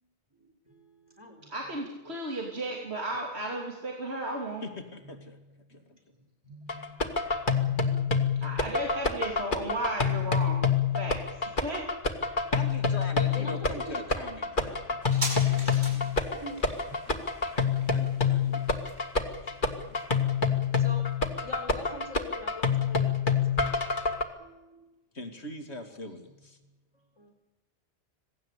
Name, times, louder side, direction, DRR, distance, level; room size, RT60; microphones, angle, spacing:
voice 1, 0.4-1.5 2.0-2.2 2.8-2.9 5.0-6.0 6.4-7.2 12.8-12.9 13.3-14.0 14.3-14.4 14.9-15.0 16.3-17.3 17.8-17.9 19.2-24.9 26.6-27.3, left 1 dB, 25° right, 4 dB, 3.8 m, -47 dB
voice 2, 1.5-4.6 8.4-10.6 11.0-11.9, right 1 dB, 75° right, 0 dB, 3.3 m, -34 dB
voice 3, 4.6-5.4 5.7-6.0 12.5-16.4 17.9-18.7 25.1-26.6, left 1 dB, 80° left, 7 dB, 2.9 m, -42 dB
sound 1, 6.7-24.2, left 5 dB, 50° left, 2.1 m, -27 dB
sound 2, 15.0-22.1 22.4-22.5, right 1 dB, 45° right, 6.4 m, -42 dB
26.5 x 18.0 x 8.5 m, 1.1 s
omnidirectional pair, 1.1 m